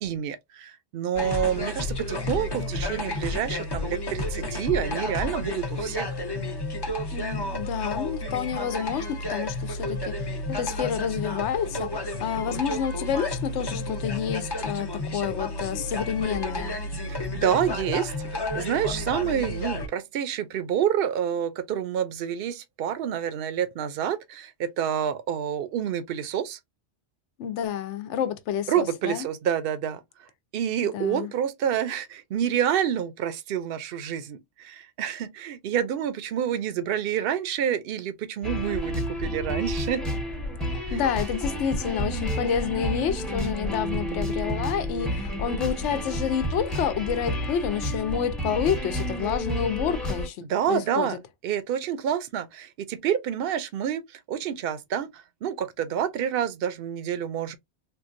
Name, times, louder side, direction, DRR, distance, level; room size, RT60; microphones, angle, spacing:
voice 1, 0.0-6.1 17.1-26.6 28.7-30.0 30.5-40.1 40.9-41.0 50.5-51.2 51.4-54.0 54.3-57.6, right 9 dB, 60° right, 0.7 m, -28 dB
sound 1, 1.1-19.9, left 2 dB, 30° left, 0.5 m, -31 dB
voice 2, 7.1-16.8 27.4-29.3 30.8-31.3 40.7-51.2, left 8 dB, 80° left, 0.9 m, -29 dB
sound 2, 38.4-50.3, equal, ahead, 0.8 m, -30 dB
3.7 x 2.3 x 2.5 m
omnidirectional pair, 1.2 m